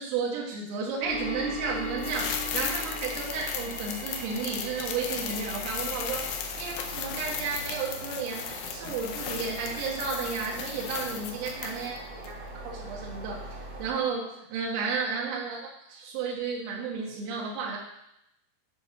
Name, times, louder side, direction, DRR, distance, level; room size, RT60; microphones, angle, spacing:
voice 1, 0.0-6.3 6.6-13.4 13.8-17.8, right 5 dB, 90° right, -3 dB, 4.2 m, -33 dB
sound 1, 1.0-6.3, left 2 dB, 20° left, 3.1 m, -40 dB
sound 2, 1.0-13.9, right 1 dB, 50° right, 2.2 m, -42 dB
sound 3, 2.0-12.0 12.2-12.3, left 8 dB, 85° left, 2.5 m, -36 dB
10.0 x 5.8 x 4.4 m, 0.81 s
omnidirectional pair, 5.8 m